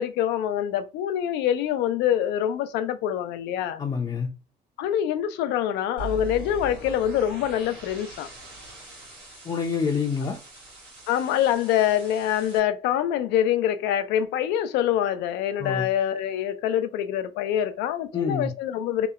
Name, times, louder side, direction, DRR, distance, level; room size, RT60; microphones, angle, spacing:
voice 1, 0.0-3.8 4.8-8.3 11.1-19.1, left 10 dB, 85° left, 0.4 m, -25 dB
voice 2, 3.8-4.3 9.4-10.4 15.6-15.8 18.1-18.5, left 5 dB, 25° left, 0.5 m, -27 dB
sound 1, 6.0-12.6, right 2 dB, 90° right, 1.3 m, -41 dB
2.8 x 2.1 x 2.4 m
cardioid pair, 110°, 17 cm